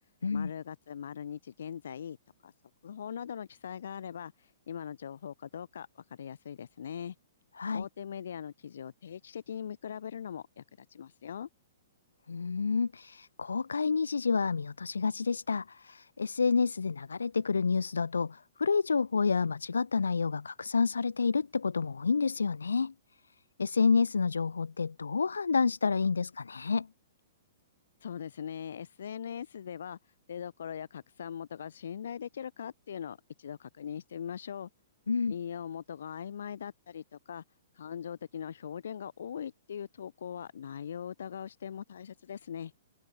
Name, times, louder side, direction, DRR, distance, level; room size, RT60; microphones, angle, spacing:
voice 1, 0.3-2.2 2.4-2.5 2.8-4.3 4.7-7.1 7.7-11.5 28.0-30.0 30.3-34.7 35.3-37.4 37.8-42.7, left 8 dB, 70° left, 1.4 m, -41 dB
voice 2, 12.3-22.9 23.6-26.9 35.1-35.3, left 5 dB, 85° left, 0.5 m, -29 dB
hypercardioid pair, 125°, 0 cm